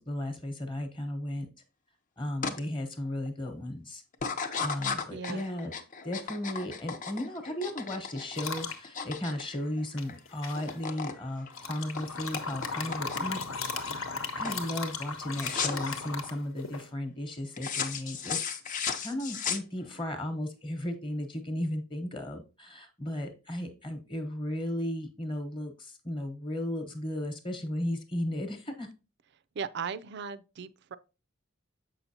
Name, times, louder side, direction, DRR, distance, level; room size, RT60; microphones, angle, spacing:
voice 1, 0.0-1.5 2.2-4.0 4.6-5.7 6.0-13.4 13.7-28.9, left 1 dB, 25° left, 1.0 m, -35 dB
sound 1, 2.4-2.6 3.1-3.5 4.1-10.2 10.4-11.2 11.5-13.4 13.9-14.2 14.4-14.7 15.3-16.0 17.6-20.1, left 6 dB, 40° left, 0.6 m, -35 dB
voice 2, 5.1-5.5 29.5-31.0, right 6 dB, 55° right, 0.4 m, -37 dB
sound 2, 8.3-8.8 10.0-10.7 11.5-16.9, left 4 dB, 75° left, 1.0 m, -36 dB
7.2 x 5.6 x 2.8 m
head